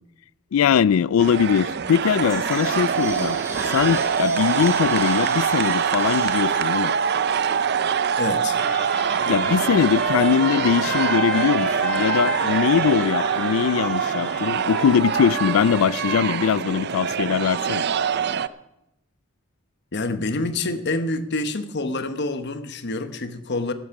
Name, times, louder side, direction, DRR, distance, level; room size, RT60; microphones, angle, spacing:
voice 1, 0.5-3.4 3.7-6.9 9.3-17.8, left 7 dB, 80° left, 0.4 m, -21 dB
sound 1, 1.2-18.5, right 7 dB, 55° right, 0.5 m, -24 dB
sound 2, 1.9-8.2, right 1 dB, 15° right, 2.4 m, -37 dB
voice 2, 8.2-8.6 19.9-23.7, left 2 dB, 55° left, 1.1 m, -27 dB
Trumpet, 8.5-16.4, left 1 dB, 5° left, 2.5 m, -33 dB
12.5 x 11.5 x 5.9 m
head